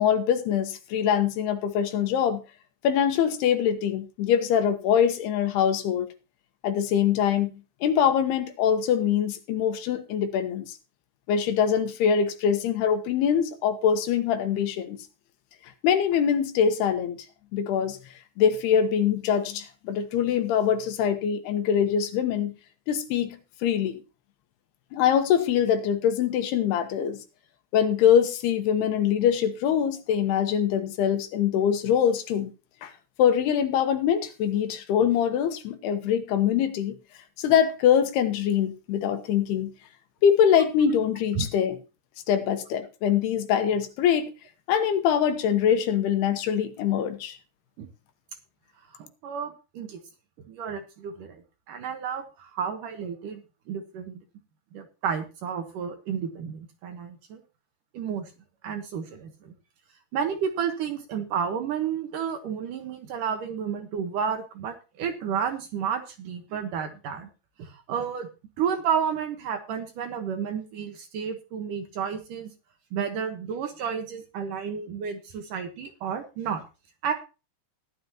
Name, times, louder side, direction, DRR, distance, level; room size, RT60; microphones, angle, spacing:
voice 1, 0.0-2.4 2.8-6.1 6.6-7.5 7.8-10.8 11.3-15.0 15.8-17.2 17.5-18.0 18.4-22.5 22.9-24.0 24.9-27.2 27.7-32.5 32.8-32.9 33.2-37.0 37.4-39.7 40.2-41.8 42.3-44.3 44.7-47.4, left 8 dB, 75° left, 3.1 m, -23 dB
voice 2, 48.9-50.0 50.5-54.2 54.7-57.4 57.9-58.3 58.6-59.5 60.1-67.3 67.6-68.3 68.6-72.5 72.9-76.6 77.0-77.1, right 7 dB, 65° right, 2.5 m, -31 dB
15.5 x 11.5 x 2.9 m
omnidirectional pair, 4.7 m